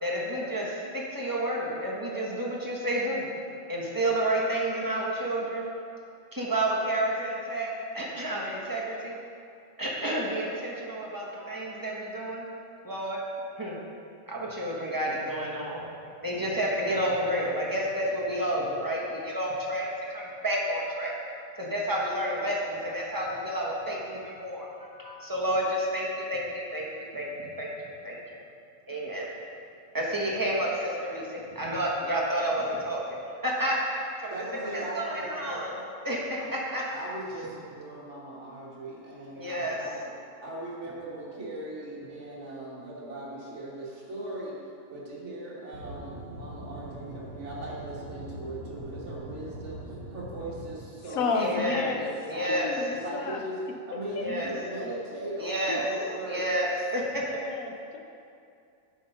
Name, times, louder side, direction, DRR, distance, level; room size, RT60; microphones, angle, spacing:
voice 1, 0.0-3.3 3.7-5.7 6.3-9.2 9.8-12.5 12.8-13.2 13.6-13.8 14.3-15.8 16.2-19.8 20.1-21.1 21.5-26.4 26.7-26.9 27.1-27.7 28.0-28.2 28.9-29.3 29.9-33.2 33.4-35.7 36.0-36.4 36.7-36.8 39.4-39.8 51.3-51.9 52.3-52.7 54.2-54.5 55.3-55.8 56.2-57.2, right 1 dB, 15° right, -4 dB, 1.2 m, -30 dB
voice 2, 34.3-35.8 36.4-36.5 36.9-40.0 40.4-44.6 44.9-52.6 53.0-53.6 53.9-56.6, right 1 dB, 55° right, -5 dB, 1.8 m, -39 dB
Aircraft / Engine, 45.7-50.7, right 1 dB, 75° right, 1.6 m, -41 dB
voice 3, 51.1-52.0 52.4-53.4 54.2-54.4 55.7-56.2 57.2-58.0, left 4 dB, 75° left, 3 dB, 1.1 m, -32 dB
8.9 x 4.6 x 5.5 m, 2.5 s
omnidirectional pair, 1.5 m